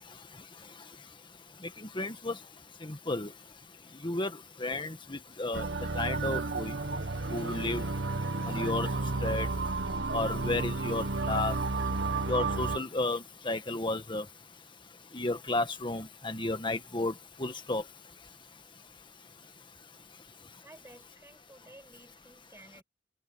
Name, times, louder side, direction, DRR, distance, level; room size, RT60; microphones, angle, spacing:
voice 1, 1.9-2.3 2.8-3.3 4.0-4.3 4.6-5.6 6.0-6.7 7.3-7.8 8.5-8.9 9.2-9.5 10.1-11.5 12.3-14.2 15.1-17.1 17.4-17.8, left 2 dB, 25° left, 1.6 m, -32 dB
sound 1, 5.5-12.8, right 3 dB, 85° right, 1.5 m, -32 dB
voice 2, 20.6-22.8, right 1 dB, 15° right, 6.7 m, -54 dB
head